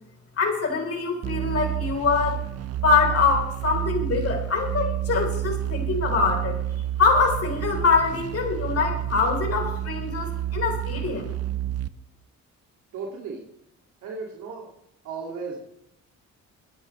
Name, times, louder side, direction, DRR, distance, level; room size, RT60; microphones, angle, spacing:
voice 1, 0.4-2.4 2.8-6.6 7.0-11.3, left 5 dB, 50° left, 3 dB, 3.8 m, -24 dB
sound 1, 1.2-11.9, right 12 dB, 55° right, 0.7 m, -29 dB
voice 2, 12.9-13.4 14.0-14.7 15.0-15.6, right 4 dB, 85° right, -1 dB, 2.4 m, -35 dB
22.5 x 9.7 x 3.2 m, 0.78 s
cardioid pair, 90°, 30 cm